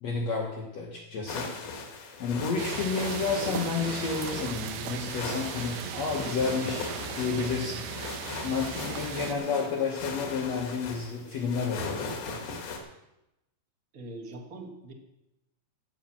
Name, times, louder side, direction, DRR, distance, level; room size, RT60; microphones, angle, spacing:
voice 1, 0.0-1.5 2.2-7.9 8.4-11.9, left 5 dB, 55° left, -2 dB, 2.2 m, -31 dB
sound 1, 1.3-12.8, left 4 dB, 80° left, 3.5 m, -38 dB
sound 2, 2.6-9.4, right 7 dB, 85° right, 2.8 m, -37 dB
voice 2, 13.9-14.9, right 1 dB, 60° right, 1 dB, 0.9 m, -43 dB
17.5 x 5.8 x 7.4 m, 0.92 s
omnidirectional pair, 4.3 m